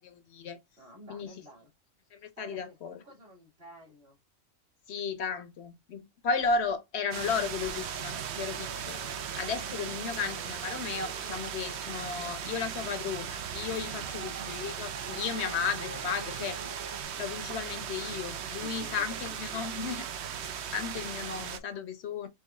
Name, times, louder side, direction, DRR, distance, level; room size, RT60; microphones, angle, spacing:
voice 1, 0.0-0.6 1.1-1.3 2.1-2.9 4.9-9.0 9.4-16.6 17.2-20.1 20.7-22.3, left 5 dB, 60° left, 0.9 m, -34 dB
voice 2, 0.8-1.7 2.4-4.2 13.9-14.1 18.6-19.8, equal, 50° right, 2.2 m, -51 dB
sound 1, 7.1-21.6, right 8 dB, 65° right, 0.9 m, -38 dB
sound 2, 7.5-17.0, right 1 dB, 15° right, 0.7 m, -49 dB
4.7 x 3.4 x 2.2 m
omnidirectional pair, 1.3 m